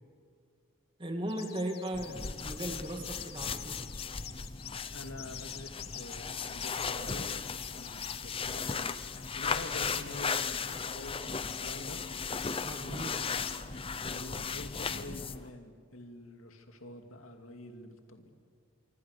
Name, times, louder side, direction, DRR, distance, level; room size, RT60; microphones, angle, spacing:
voice 1, 1.0-3.8 12.6-13.2 13.7-13.9, right 1 dB, 25° right, 4 dB, 2.4 m, -37 dB
sound 1, 1.3-13.6, left 11 dB, 50° left, 1.2 m, -48 dB
sound 2, 1.9-15.5, left 5 dB, 25° left, 0.7 m, -36 dB
voice 2, 4.9-12.0 12.8-13.8 14.0-18.3, left 2 dB, 85° left, 5 dB, 2.5 m, -47 dB
26.0 x 25.0 x 6.8 m, 2.2 s
head